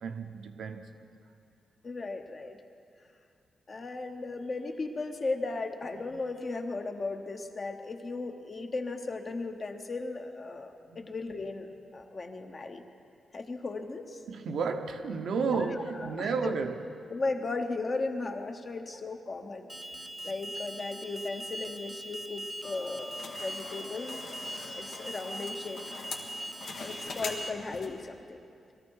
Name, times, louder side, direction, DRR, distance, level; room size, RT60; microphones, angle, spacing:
voice 1, 0.0-1.1 10.9-11.0 14.3-16.9 20.2-20.3, right 5 dB, 75° right, 0.9 m, -32 dB
voice 2, 1.8-2.6 3.7-12.8 13.3-14.2 15.4-16.3 17.1-19.7 20.2-23.1 23.4-24.2 24.7-25.8 26.8-28.4, left 3 dB, 35° left, 1.0 m, -36 dB
Alarm, 19.7-27.5, right 1 dB, 10° right, 0.4 m, -41 dB
sound 1, 22.6-28.1, left 4 dB, 80° left, 1.6 m, -43 dB
21.0 x 14.0 x 4.7 m
wide cardioid pair, 145°, 0 cm